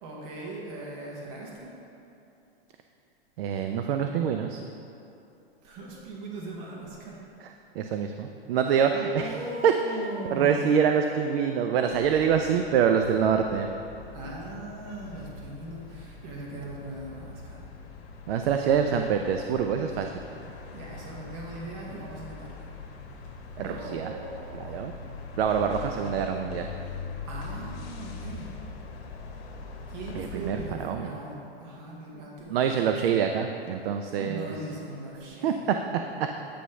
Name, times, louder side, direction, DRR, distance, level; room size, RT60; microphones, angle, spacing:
voice 1, 0.0-1.8 5.6-7.2 9.2-10.8 12.1-12.4 14.1-17.7 20.7-22.7 23.6-24.8 27.2-28.5 29.9-32.6 34.2-35.8, right 2 dB, 35° right, -3 dB, 1.1 m, -39 dB
voice 2, 3.4-4.6 7.8-9.3 9.6-9.7 10.3-13.7 18.3-20.1 23.6-24.1 24.5-24.9 25.4-26.7 30.2-31.1 32.5-34.5 35.4-35.5, right 7 dB, 70° right, 5 dB, 0.5 m, -25 dB
sound 1, 11.9-30.7, left 4 dB, 70° left, 1.0 m, -42 dB
8.4 x 3.1 x 5.6 m, 2.8 s
hypercardioid pair, 140°, 31 cm